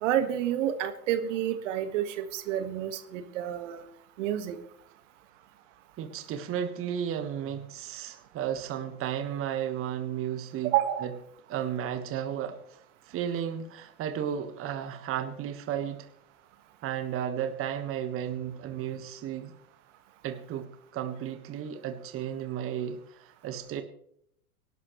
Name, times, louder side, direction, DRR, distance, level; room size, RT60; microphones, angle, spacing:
voice 1, 0.0-3.8 4.2-4.6 10.6-11.1, right 11 dB, 55° right, 9 dB, 1.7 m, -29 dB
voice 2, 6.0-10.7 11.0-11.1 11.5-12.8 13.1-16.1 16.8-19.5 20.2-23.8, right 9 dB, 30° right, 8 dB, 1.5 m, -34 dB
25.0 x 12.0 x 3.2 m, 0.70 s
figure-of-eight pair, 95°, 43 cm